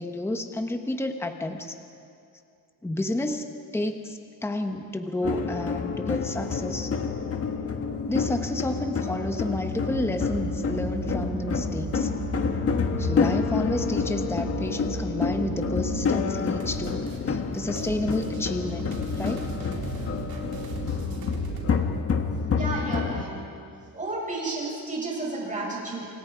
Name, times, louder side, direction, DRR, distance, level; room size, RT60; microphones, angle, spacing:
voice 1, 0.0-1.8 2.8-6.9 8.1-12.1 13.0-19.5, left 1 dB, 5° left, 6 dB, 1.2 m, -31 dB
sound 1, 5.2-23.2, left 5 dB, 40° left, 1.6 m, -28 dB
sound 2, 9.9-16.0, right 5 dB, 90° right, 3.3 m, -35 dB
sound 3, 16.6-21.8, right 6 dB, 70° right, 4.3 m, -38 dB
voice 2, 22.6-23.4 23.9-26.1, right 2 dB, 20° right, -3 dB, 7.7 m, -32 dB
28.5 x 26.5 x 5.1 m, 2.5 s
cardioid pair, 140°, 37 cm